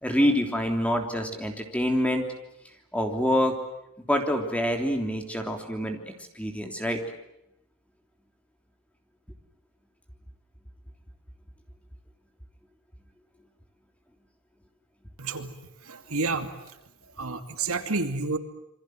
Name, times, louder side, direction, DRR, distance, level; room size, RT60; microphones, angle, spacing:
voice 1, 0.0-2.2 2.9-3.6 4.1-6.0 6.3-7.0, equal, 5° left, 4 dB, 3.3 m, -26 dB
voice 2, 15.2-16.8 17.1-18.4, right 3 dB, 70° right, 7 dB, 2.5 m, -30 dB
28.0 x 24.5 x 7.8 m, 0.82 s
head